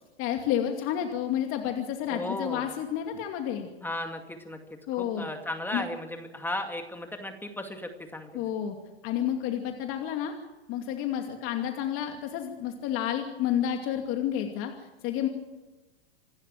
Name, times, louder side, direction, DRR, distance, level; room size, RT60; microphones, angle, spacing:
voice 1, 0.2-3.7 4.9-5.3 5.7-5.8 8.3-8.8 9.0-10.3 10.7-15.3, left 10 dB, 45° left, 4 dB, 2.5 m, -30 dB
voice 2, 2.1-2.7 3.8-4.6 5.0-8.4, left 1 dB, 5° left, 5 dB, 2.3 m, -35 dB
27.5 x 12.5 x 9.1 m, 1.1 s
hypercardioid pair, 105°, 31 cm